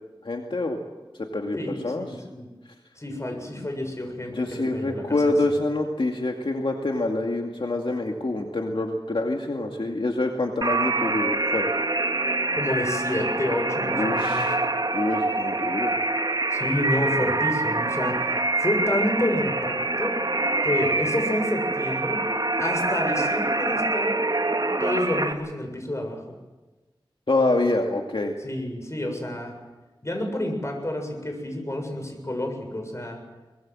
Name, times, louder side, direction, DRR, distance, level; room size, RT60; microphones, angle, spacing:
voice 1, 0.2-0.8 1.2-2.2 3.6-3.7 4.3-11.7 13.9-14.6 14.9-16.0 27.3-28.3, left 2 dB, 70° left, 2 dB, 2.2 m, -26 dB
voice 2, 1.5-2.5 3.0-5.4 12.5-14.5 16.5-20.2 20.6-22.2 22.6-24.3 24.8-26.2 28.4-29.5 30.0-33.2, left 1 dB, 35° left, 3 dB, 7.2 m, -29 dB
sound 1, 10.6-25.3, right 2 dB, 50° right, 2.2 m, -25 dB
23.5 x 21.0 x 7.8 m, 1.2 s
wide cardioid pair, 65°, 9 cm